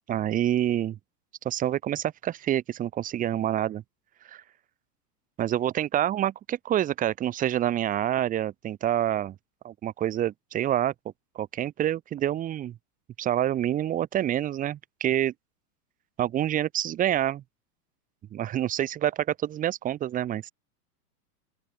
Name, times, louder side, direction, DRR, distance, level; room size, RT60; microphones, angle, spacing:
voice 1, 0.1-1.0 1.4-3.8 4.3-4.4 5.4-9.4 9.6-10.9 11.4-12.8 13.2-15.3 16.2-17.4 18.3-20.5, right 11 dB, 15° right, 5.5 m, -27 dB
open air
supercardioid pair, 180°, 48 cm